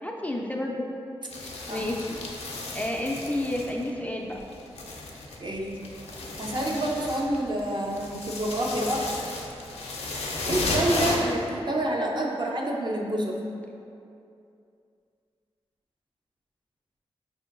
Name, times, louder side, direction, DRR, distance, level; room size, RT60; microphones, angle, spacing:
voice 1, 0.0-0.9 1.4-2.2 2.7-4.4, left 1 dB, 15° left, -1 dB, 0.4 m, -31 dB
sound 1, 1.3-4.0 4.3-11.5, left 2 dB, 75° left, 0.5 m, -34 dB
voice 2, 5.4-5.8 6.4-9.0 10.4-13.3, right 1 dB, 45° right, -1 dB, 0.6 m, -28 dB
5.0 x 2.7 x 2.5 m, 2.6 s
cardioid pair, 45°, 11 cm